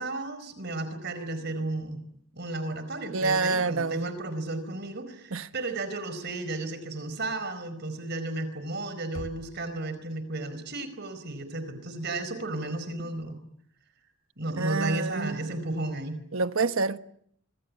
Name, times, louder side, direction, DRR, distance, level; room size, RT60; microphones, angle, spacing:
voice 1, 0.0-2.0 2.3-13.4 14.4-16.2, right 2 dB, 55° right, 4.6 m, -33 dB
voice 2, 3.1-4.1 5.3-5.5 14.6-15.5 16.3-17.0, right 3 dB, 80° right, 1.3 m, -27 dB
Knock, 9.1-10.1, left 1 dB, 80° left, 2.3 m, -43 dB
26.5 x 26.0 x 8.4 m
head